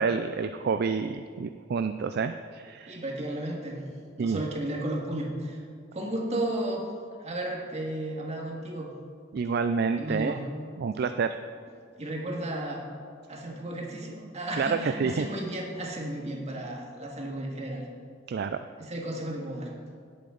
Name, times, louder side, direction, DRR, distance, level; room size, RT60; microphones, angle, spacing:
voice 1, 0.0-3.0 4.2-4.4 9.3-10.4 10.8-11.3 14.6-15.3 18.3-18.6, right 5 dB, 55° right, 9 dB, 0.4 m, -28 dB
voice 2, 2.9-3.8 4.2-5.6 5.9-6.9 7.2-8.9 10.0-10.4 12.0-12.8 13.3-17.9 18.8-19.7, right 1 dB, 35° right, -1 dB, 1.9 m, -33 dB
17.0 x 8.5 x 3.9 m, 2.2 s
head